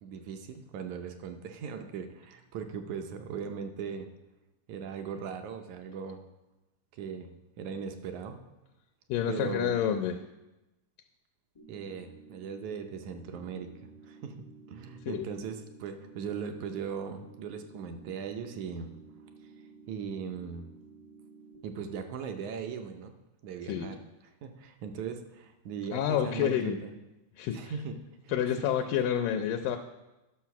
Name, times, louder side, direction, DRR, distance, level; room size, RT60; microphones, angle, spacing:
voice 1, 0.0-4.1 4.7-6.2 6.9-7.3 7.6-8.4 9.3-9.8 11.7-18.9 19.4-19.5 19.9-20.7 21.6-23.1 23.4-24.0 24.4-26.9 27.5-28.0 28.2-28.6, right 6 dB, 75° right, 6 dB, 1.9 m, -39 dB
voice 2, 9.1-10.2 15.1-15.3 23.7-23.9 25.9-26.8 27.4-27.7 28.3-29.8, left 9 dB, 80° left, 5 dB, 2.2 m, -29 dB
sound 1, 11.5-21.6, right 4 dB, 45° left, 0.4 m, -54 dB
11.0 x 6.2 x 5.8 m, 1.0 s
omnidirectional pair, 3.9 m